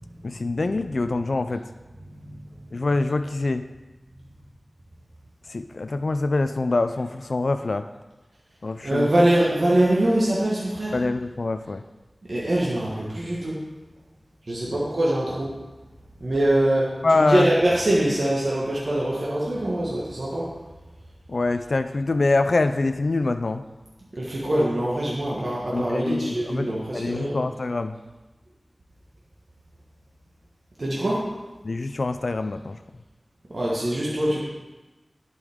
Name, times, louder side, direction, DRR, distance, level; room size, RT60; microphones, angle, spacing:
voice 1, 0.2-1.7 2.7-3.7 5.5-7.9 8.6-9.1 10.9-11.8 14.7-14.8 17.0-17.5 21.3-23.6 25.7-28.0 31.6-32.8, left 3 dB, 75° left, 9 dB, 0.3 m, -25 dB
voice 2, 8.8-10.9 12.3-13.6 14.5-15.5 16.2-20.5 24.1-27.4 30.8-31.3 33.5-34.4, right 1 dB, 60° right, -5 dB, 1.5 m, -23 dB
11.5 x 5.4 x 3.6 m, 1.1 s
wide cardioid pair, 45°, 0 cm